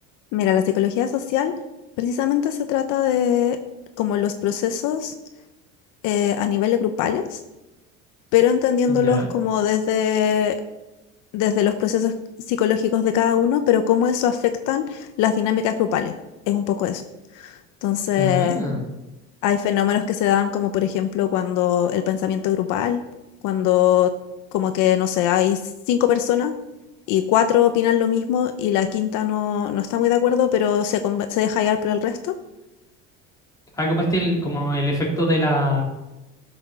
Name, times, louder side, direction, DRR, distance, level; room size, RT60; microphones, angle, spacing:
voice 1, 0.3-1.5 2.0-3.6 4.0-5.1 6.0-7.4 8.3-10.6 11.3-12.1 12.5-16.1 16.5-17.0 17.3-18.6 19.4-23.0 23.4-24.1 24.5-25.6 25.9-26.5 27.1-32.3, left 10 dB, 65° left, 8 dB, 0.9 m, -21 dB
voice 2, 8.9-9.3 18.2-18.8 33.8-35.8, equal, 10° left, -3 dB, 3.6 m, -23 dB
13.0 x 6.4 x 6.3 m, 1.0 s
cardioid pair, 145°, 32 cm